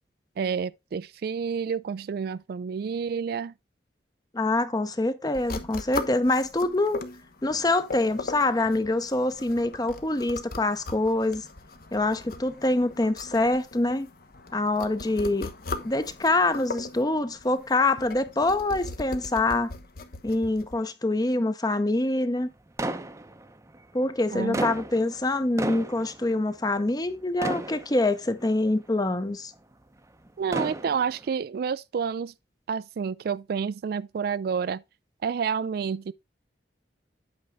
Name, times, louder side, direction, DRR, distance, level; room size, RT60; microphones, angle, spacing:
voice 1, 0.4-3.5 24.3-24.7 30.4-32.3 32.7-34.8 35.2-36.1, right 6 dB, 60° right, 0.3 m, -29 dB
voice 2, 4.3-7.0 7.4-11.5 11.9-14.1 14.5-15.5 15.8-19.7 20.2-22.5 23.9-29.5, left 2 dB, 20° left, 0.7 m, -25 dB
sound 1, 5.3-20.7, left 3 dB, 55° left, 1.0 m, -39 dB
sound 2, 22.8-23.8 24.3-27.1 27.4-28.5 29.1-29.2 30.3-31.3, right 1 dB, 15° right, 0.6 m, -33 dB
8.8 x 5.2 x 3.6 m
head